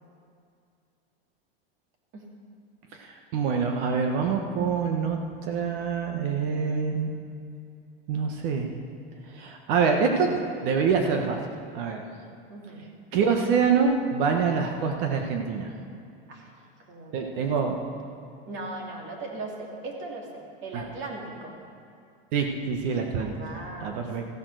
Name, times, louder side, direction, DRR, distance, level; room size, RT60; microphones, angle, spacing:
voice 1, 3.0-7.1 8.1-8.7 9.3-11.4 11.7-12.0 13.1-15.7 17.1-17.8 20.7-20.8 22.3-23.4 23.8-24.3, right 5 dB, 55° right, 3 dB, 1.4 m, -25 dB
voice 2, 12.5-12.9 16.3-16.5 16.9-17.5 18.5-21.5 23.2-24.0, right 2 dB, 40° right, 0 dB, 2.7 m, -38 dB
15.0 x 8.8 x 6.5 m, 2.4 s
supercardioid pair, 135°, 31 cm